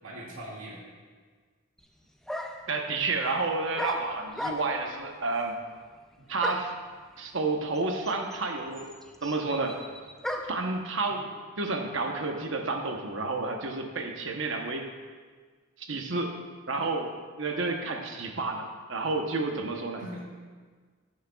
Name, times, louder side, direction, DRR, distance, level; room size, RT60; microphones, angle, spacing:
voice 1, 0.0-0.8 6.2-6.4 11.1-11.3 20.0-20.2, right 1 dB, 80° right, -6 dB, 2.2 m, -41 dB
sound 1, 1.8-1.9 2.3-2.7 3.8-4.9 6.4-6.8 7.7-7.8 8.0-10.7, left 1 dB, ahead, 0.4 m, -36 dB
voice 2, 2.7-5.6 6.3-6.7 7.2-8.9 9.2-9.8 10.4-11.2 11.6-14.9 15.8-16.4 16.7-20.0, right 3 dB, 60° right, 3 dB, 1.0 m, -30 dB
16.5 x 6.5 x 2.3 m, 1.5 s
head